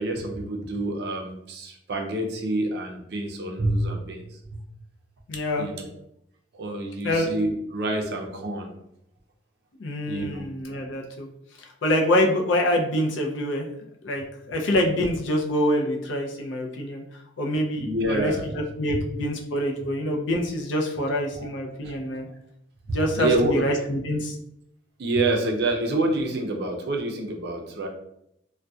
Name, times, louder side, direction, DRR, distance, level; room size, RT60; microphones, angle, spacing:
voice 1, 0.0-4.3 5.6-5.9 6.5-8.7 10.0-10.4 17.8-18.4 18.9-19.0 21.3-21.5 21.8-22.0 22.9-23.6 25.0-27.9, right 2 dB, 55° right, 1 dB, 0.4 m, -27 dB
voice 2, 5.3-5.7 7.0-7.3 9.8-11.3 11.8-13.7 14.0-17.0 17.4-22.3 22.9-24.3, left 1 dB, 75° left, 1 dB, 0.4 m, -25 dB
2.6 x 2.1 x 2.3 m, 0.77 s
head